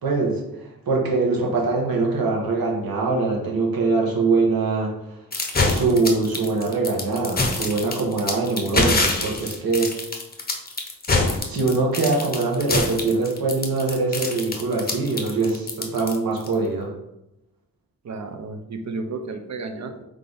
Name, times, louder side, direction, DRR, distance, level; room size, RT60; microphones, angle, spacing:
voice 1, 0.0-4.9 5.7-9.9 11.4-16.9, right 3 dB, 75° right, 0 dB, 1.1 m, -23 dB
sound 1, 5.3-16.5, left 3 dB, 25° left, 0.7 m, -25 dB
voice 2, 18.0-20.0, right 3 dB, 50° right, 5 dB, 0.6 m, -32 dB
3.7 x 3.3 x 3.9 m, 0.90 s
wide cardioid pair, 115°, 35 cm